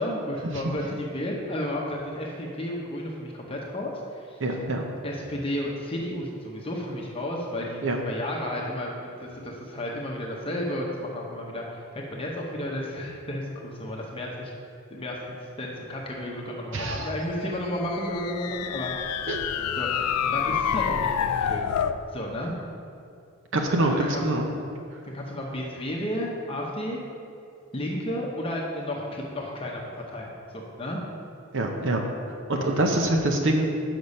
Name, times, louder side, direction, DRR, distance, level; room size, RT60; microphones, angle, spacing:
voice 1, 0.0-4.4 5.0-14.5 14.9-19.1 19.8-21.6 22.1-22.5 23.8-24.4 25.0-27.0 27.7-31.0 32.5-32.7, left 1 dB, 25° left, -2 dB, 0.8 m, -32 dB
voice 2, 4.4-4.8 7.8-8.0 16.7-17.1 19.3-19.4 23.5-24.5 31.5-32.0 32.5-33.7, right 2 dB, 55° right, 2 dB, 0.7 m, -24 dB
sound 1, 17.6-22.0, left 8 dB, 85° left, 0.3 m, -28 dB
6.7 x 5.9 x 5.4 m, 2.5 s
head